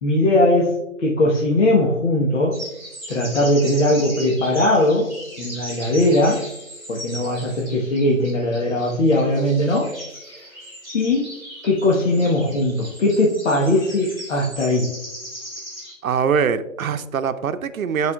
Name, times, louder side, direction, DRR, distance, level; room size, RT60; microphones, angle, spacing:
voice 1, 0.0-2.6 3.1-6.5 6.9-9.9 10.3-10.4 10.9-11.4 11.6-15.0, left 1 dB, 60° left, -3 dB, 1.3 m, -19 dB
sound 1, 2.5-15.9, equal, 10° left, 1.7 m, -38 dB
voice 2, 16.0-18.1, right 6 dB, 85° right, 10 dB, 0.7 m, -22 dB
11.0 x 4.8 x 2.3 m, 0.91 s
hypercardioid pair, 165°, 41 cm